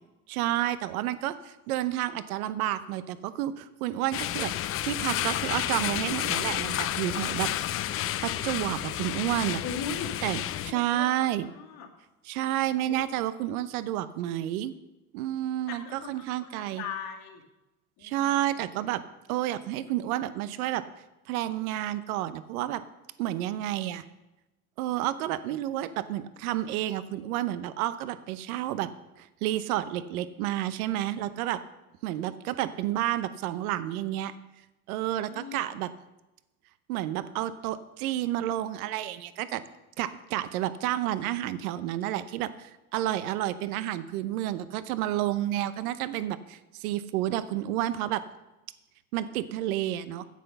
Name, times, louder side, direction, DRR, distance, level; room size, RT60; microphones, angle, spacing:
voice 1, 0.3-4.5 4.8-7.5 8.2-9.6 10.2-11.5 12.2-14.7 15.1-16.8 18.0-19.0 19.3-20.9 21.3-22.8 23.2-24.0 24.8-28.9 29.2-31.6 32.0-34.3 34.9-35.9 36.9-39.6 40.0-48.2 49.1-50.2, right 13 dB, 80° right, 14 dB, 0.8 m, -30 dB
sound 1, 4.1-10.7, left 12 dB, 35° left, 0.5 m, -31 dB
voice 2, 9.6-10.1 10.7-11.9 12.8-13.2 15.7-17.4 18.0-18.7 35.3-35.8, left 6 dB, 60° left, -1 dB, 2.4 m, -40 dB
9.6 x 7.9 x 6.8 m, 1.0 s
supercardioid pair, 95°, 43 cm